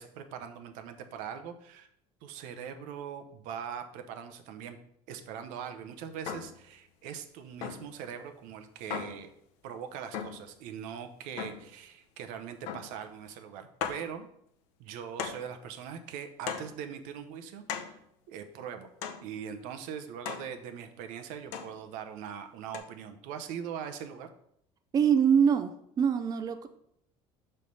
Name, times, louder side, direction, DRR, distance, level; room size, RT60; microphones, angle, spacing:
voice 1, 0.0-1.9 2.2-4.8 5.1-9.3 9.6-14.3 14.8-18.0 18.3-18.9 19.2-24.3, right 8 dB, 75° right, 7 dB, 0.7 m, -41 dB
sound 1, 6.3-6.6 7.6-8.0 8.9-9.3 10.1-10.5 11.4-11.7 12.7-13.0 13.3-13.4 13.8-14.1 15.2-15.5 16.5-16.8 17.7-18.0 19.0-19.3 20.2-20.5 21.5-21.8 22.7-22.8, left 7 dB, 85° left, 0.7 m, -37 dB
voice 2, 24.9-26.7, right 7 dB, 30° right, 9 dB, 0.4 m, -24 dB
5.6 x 3.3 x 5.3 m, 0.73 s
cardioid pair, 115°, 13 cm